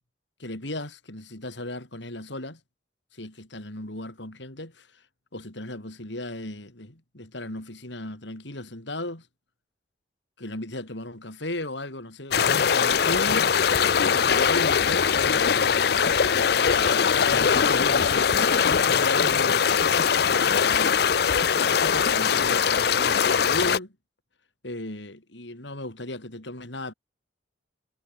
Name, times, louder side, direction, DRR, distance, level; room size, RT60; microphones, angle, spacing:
voice 1, 0.4-2.6 3.1-5.0 5.3-9.3 10.4-13.8 14.1-15.8 16.5-18.3 18.7-19.7 20.3-23.9 24.6-26.9, left 1 dB, 75° left, 4.5 m, -36 dB
sound 1, 12.3-23.8, left 7 dB, 55° left, 0.5 m, -21 dB
head